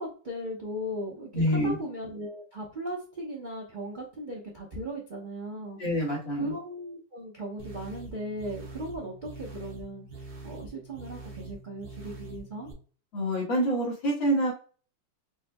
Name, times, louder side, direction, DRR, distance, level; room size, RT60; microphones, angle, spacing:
voice 1, 0.0-5.8 6.3-10.1 10.4-12.7, equal, 80° right, -3 dB, 0.4 m, -37 dB
voice 2, 1.3-1.8 5.8-6.5 13.1-14.5, right 1 dB, 65° left, -4 dB, 2.4 m, -26 dB
sound 1, 7.6-12.7, right 3 dB, 45° right, 0.8 m, -44 dB
5.4 x 2.7 x 2.2 m, 0.39 s
omnidirectional pair, 2.3 m